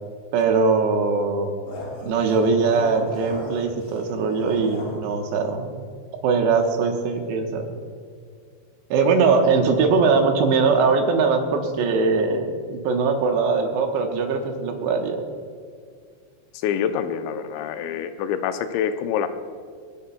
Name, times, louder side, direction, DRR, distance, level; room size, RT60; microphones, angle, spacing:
voice 1, 0.3-1.5 2.0-5.8 6.2-7.7 8.9-15.2, right 4 dB, 80° right, 3 dB, 3.1 m, -21 dB
sound 1, 1.7-5.0, left 1 dB, 55° left, 5.5 m, -37 dB
voice 2, 16.5-19.3, left 8 dB, 85° left, 9 dB, 3.0 m, -26 dB
27.0 x 10.0 x 2.3 m, 2.1 s
omnidirectional pair, 5.1 m